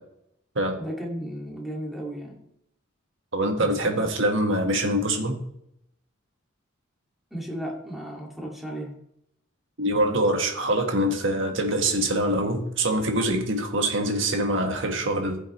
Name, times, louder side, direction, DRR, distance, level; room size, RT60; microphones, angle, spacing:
voice 1, 0.8-2.4 3.6-4.1 7.3-8.9, equal, ahead, -2 dB, 2.2 m, -35 dB
voice 2, 3.3-5.4 9.8-15.4, right 1 dB, 60° right, 3 dB, 1.7 m, -24 dB
15.0 x 7.5 x 3.2 m, 0.77 s
head